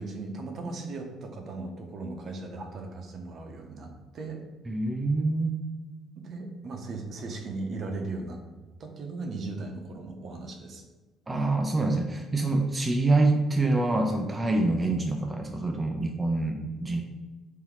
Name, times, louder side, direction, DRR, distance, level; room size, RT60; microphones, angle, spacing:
voice 1, 0.0-4.4 6.2-8.4 8.8-10.8, right 3 dB, 55° right, 4 dB, 0.8 m, -37 dB
voice 2, 4.7-5.6 11.3-17.0, right 2 dB, 20° right, 3 dB, 0.5 m, -26 dB
3.9 x 2.8 x 4.5 m, 1.2 s
supercardioid pair, 75°, 0 cm